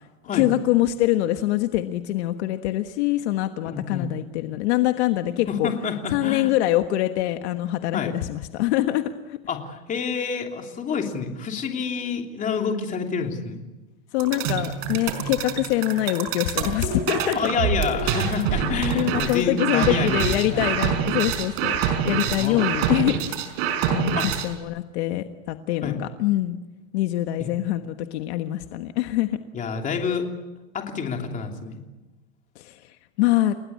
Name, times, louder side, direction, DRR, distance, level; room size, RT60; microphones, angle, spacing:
voice 1, 0.3-5.7 6.1-9.4 14.1-17.4 18.9-21.8 22.0-23.5 23.9-26.6 26.9-29.4 32.5-33.5, left 15 dB, 55° left, 7 dB, 1.4 m, -24 dB
voice 2, 3.6-4.1 5.5-6.5 7.9-8.1 9.5-13.6 17.3-20.8 22.4-22.7 24.1-24.3 25.8-26.0 27.4-27.5 29.5-30.3 30.7-31.8, left 6 dB, 20° left, 3 dB, 3.1 m, -28 dB
sound 1, 14.2-24.6, right 8 dB, 45° right, 5.0 m, -26 dB
30.0 x 20.0 x 8.5 m, 1.1 s
supercardioid pair, 160°, 40 cm